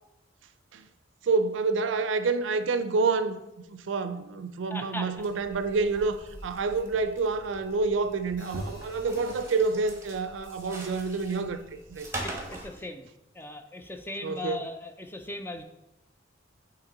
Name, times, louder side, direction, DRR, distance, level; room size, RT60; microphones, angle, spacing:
voice 1, 1.2-3.4 3.7-11.6 11.9-12.1 14.2-14.6, right 4 dB, 70° right, 0.4 m, -28 dB
voice 2, 4.7-5.3 12.2-13.1 13.3-15.6, left 1 dB, 10° left, 0.3 m, -38 dB
sound 1, 5.1-12.7, right 1 dB, 15° right, 0.9 m, -42 dB
Hi-hat, 8.4-12.6, left 2 dB, 80° left, 1.5 m, -55 dB
8.6 x 2.9 x 3.9 m
head